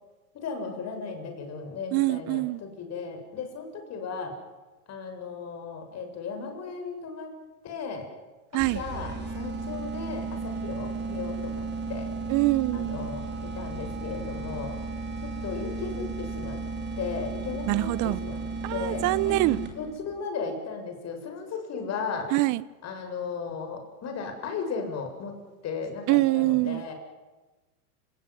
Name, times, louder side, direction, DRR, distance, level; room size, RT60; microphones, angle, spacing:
voice 1, 0.3-4.3 4.9-7.3 7.6-8.1 8.5-12.1 12.7-14.8 15.2-16.6 17.0-18.4 18.7-19.4 19.8-22.3 22.8-25.3 25.6-26.9, left 5 dB, 35° left, 5 dB, 7.4 m, -36 dB
voice 2, 1.9-2.6 8.5-8.8 12.3-13.1 17.7-18.2 18.6-19.6 22.3-22.6 26.1-26.9, right 20 dB, 40° right, 19 dB, 1.1 m, -24 dB
sound 1, 8.6-20.0, right 3 dB, 20° right, 5.0 m, -34 dB
30.0 x 19.0 x 9.8 m, 1.2 s
hypercardioid pair, 115°, 46 cm